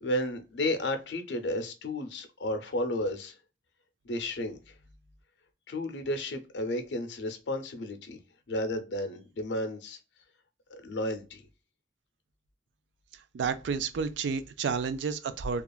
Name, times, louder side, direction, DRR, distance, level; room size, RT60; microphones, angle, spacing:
voice 1, 0.0-3.4 4.0-4.6 5.7-8.2 8.5-10.0 10.8-11.4, left 1 dB, 75° left, 0.6 m, -32 dB
voice 2, 13.3-15.6, right 5 dB, 80° right, 0.4 m, -31 dB
2.8 x 2.4 x 2.3 m
head